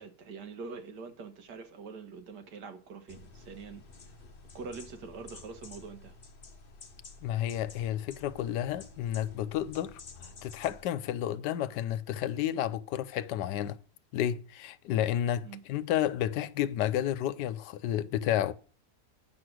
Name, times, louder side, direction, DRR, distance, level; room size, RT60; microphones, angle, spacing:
voice 1, 0.0-3.8 4.5-6.2 15.4-15.6, right 4 dB, 80° right, 1.9 m, -44 dB
sound 1, 3.1-10.9, left 4 dB, 35° left, 1.1 m, -51 dB
voice 2, 7.2-13.8 14.1-18.5, left 11 dB, 85° left, 1.3 m, -31 dB
9.3 x 6.4 x 6.1 m
omnidirectional pair, 1.8 m